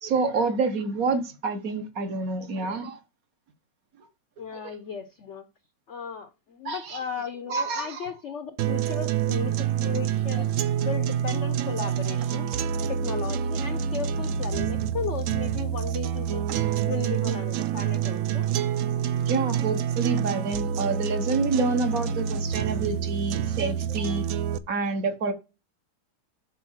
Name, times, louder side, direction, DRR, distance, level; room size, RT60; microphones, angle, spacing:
voice 1, 0.0-3.0 4.5-4.6 6.6-7.0 7.5-8.1 19.1-24.3 24.7-25.3, right 4 dB, 55° right, 1.4 m, -28 dB
voice 2, 4.4-5.5 5.9-12.5 12.9-16.5 16.9-18.5, left 7 dB, 60° left, 0.8 m, -36 dB
sound 1, 8.6-24.6, right 9 dB, 75° right, 0.7 m, -27 dB
7.5 x 4.3 x 6.4 m
omnidirectional pair, 1.9 m